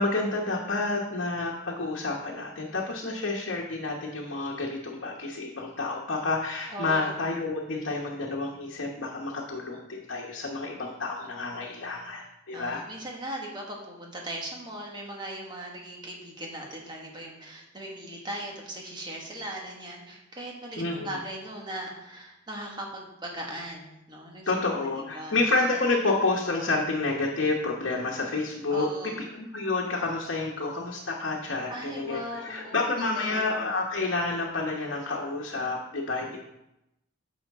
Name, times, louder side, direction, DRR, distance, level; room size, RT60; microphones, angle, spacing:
voice 1, 0.0-12.8 20.8-21.2 24.5-28.9 29.3-36.4, left 3 dB, 75° left, -2 dB, 1.1 m, -29 dB
voice 2, 6.7-7.2 12.5-24.5 25.0-25.4 28.7-29.2 31.7-33.5, right 1 dB, 25° right, -1 dB, 1.5 m, -39 dB
9.5 x 6.4 x 3.6 m, 0.88 s
head